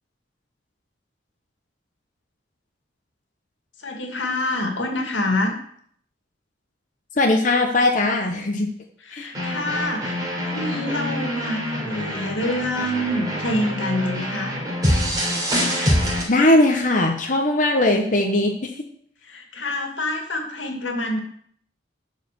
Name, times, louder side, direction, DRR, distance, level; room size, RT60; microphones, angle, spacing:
voice 1, 3.8-5.5 9.0-14.5 19.2-21.2, left 1 dB, 80° left, 3 dB, 2.2 m, -26 dB
voice 2, 7.2-8.7 9.1-9.3 16.3-18.9, left 2 dB, 45° left, 2 dB, 1.0 m, -19 dB
sound 1, 9.3-16.2, equal, 20° right, 3.4 m, -25 dB
11.5 x 5.0 x 6.8 m, 0.63 s
head